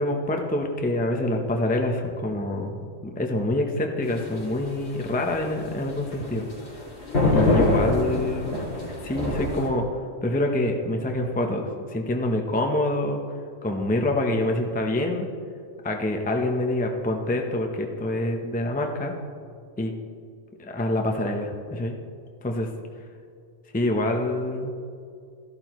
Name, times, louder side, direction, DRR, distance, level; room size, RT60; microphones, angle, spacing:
voice 1, 0.0-2.7 3.0-6.4 7.3-8.6 9.0-13.2 13.6-15.3 15.8-19.1 19.8-19.9 20.6-22.0 22.4-22.7 23.7-24.7, left 1 dB, 10° left, 2 dB, 0.7 m, -26 dB
sound 1, 4.0-9.7, left 2 dB, 55° left, 2.2 m, -25 dB
13.5 x 12.0 x 3.1 m, 2.3 s
omnidirectional pair, 1.3 m